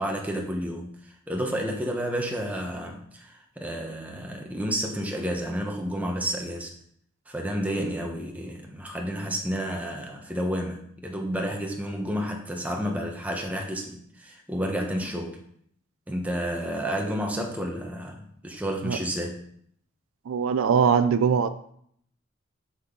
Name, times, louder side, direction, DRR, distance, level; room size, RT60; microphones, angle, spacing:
voice 1, 0.0-6.7 7.3-15.4 16.1-19.4, equal, 5° right, 1.0 m, -31 dB
voice 2, 20.3-21.5, right 6 dB, 75° right, 0.4 m, -21 dB
7.4 x 6.1 x 3.8 m
head